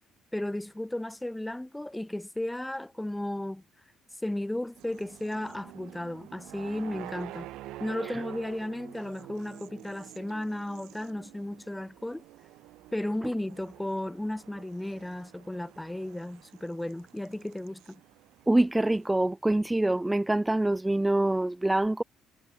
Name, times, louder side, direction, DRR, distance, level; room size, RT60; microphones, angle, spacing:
voice 1, 0.3-3.6 4.2-7.5 7.8-12.2 12.9-18.0, left 1 dB, 10° left, 4.7 m, -34 dB
sound 1, 4.8-19.1, right 16 dB, 70° right, 3.5 m, -48 dB
voice 2, 18.5-22.0, right 1 dB, 10° right, 0.6 m, -25 dB
hypercardioid pair, 55°, 0 cm